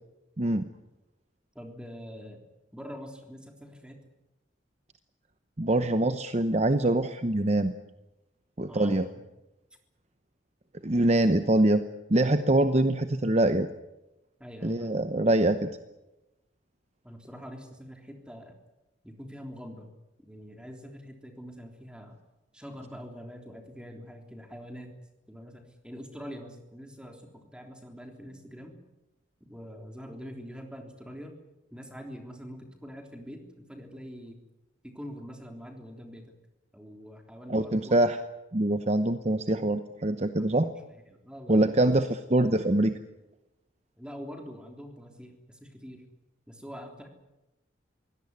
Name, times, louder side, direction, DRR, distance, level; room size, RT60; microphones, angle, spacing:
voice 1, 0.4-0.7 5.6-7.7 8.6-9.1 10.8-11.8 12.1-13.7 14.6-15.7 37.5-38.2 38.5-40.7 41.5-42.9, right 1 dB, 35° right, 9 dB, 0.9 m, -24 dB
voice 2, 1.6-2.4 2.7-4.0 8.6-9.0 14.4-14.9 17.0-18.6 19.0-19.9 20.2-22.2 22.5-24.9 25.3-28.7 29.4-31.4 31.7-34.4 34.8-36.3 36.7-38.0 40.4-40.6 41.1-41.9 44.0-46.0 46.5-47.1, equal, 5° right, 3 dB, 3.4 m, -44 dB
23.0 x 17.5 x 9.7 m, 0.99 s
head